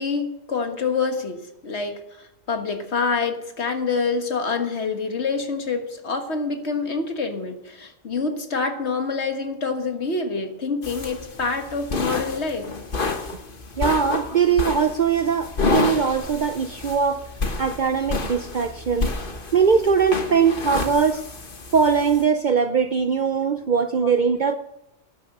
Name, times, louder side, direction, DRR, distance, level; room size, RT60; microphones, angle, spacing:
voice 1, 0.0-12.7 24.0-24.1, left 4 dB, 65° left, 5 dB, 1.8 m, -26 dB
sound 1, 10.8-22.2, left 3 dB, 50° left, 1.5 m, -29 dB
voice 2, 13.8-17.2 17.6-19.1 19.5-21.2 21.7-24.5, right 6 dB, 50° right, 9 dB, 0.6 m, -21 dB
12.0 x 10.0 x 6.6 m, 0.86 s
omnidirectional pair, 1.2 m